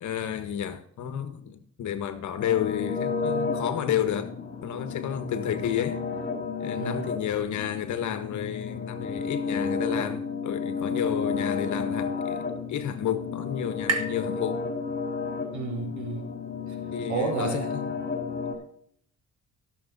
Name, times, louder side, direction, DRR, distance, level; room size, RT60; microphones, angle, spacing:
voice 1, 0.0-4.3 4.6-6.0 6.6-14.6 16.9-17.9, left 9 dB, 70° left, 1.6 m, -31 dB
sound 1, 2.4-18.5, left 5 dB, 35° left, 3.8 m, -32 dB
voice 2, 6.8-7.1 11.0-11.4 15.5-16.3 16.7-17.8, right 4 dB, 70° right, 4.0 m, -33 dB
sound 2, 11.6-15.3, right 3 dB, 55° right, 1.9 m, -37 dB
15.5 x 7.2 x 4.1 m
cardioid pair, 90°, 30 cm